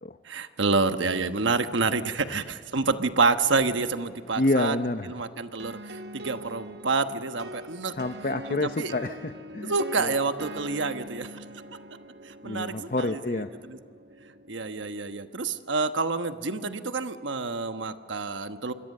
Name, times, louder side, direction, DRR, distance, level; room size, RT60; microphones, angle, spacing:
voice 1, 0.2-4.8 5.1-7.9 8.8-8.9 9.6-11.3 12.2-13.8 14.5-18.7, right 4 dB, 85° right, 9 dB, 1.2 m, -28 dB
voice 2, 4.4-5.1 7.9-10.1 12.4-13.5, left 2 dB, 45° left, 9 dB, 0.7 m, -28 dB
sound 1, 5.6-15.2, equal, 60° right, 1.1 m, -43 dB
27.0 x 21.5 x 6.6 m, 2.3 s
head